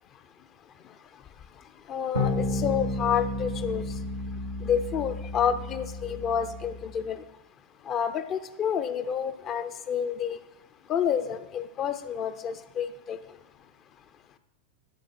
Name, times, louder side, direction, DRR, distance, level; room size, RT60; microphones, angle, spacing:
voice 1, 1.9-3.8 4.6-7.2 7.9-10.4 10.9-13.2, left 8 dB, 30° left, 11 dB, 0.6 m, -29 dB
sound 1, 2.1-6.9, left 2 dB, 85° left, 1.8 m, -32 dB
12.0 x 5.0 x 4.4 m, 0.97 s
figure-of-eight pair, 90°, 0 cm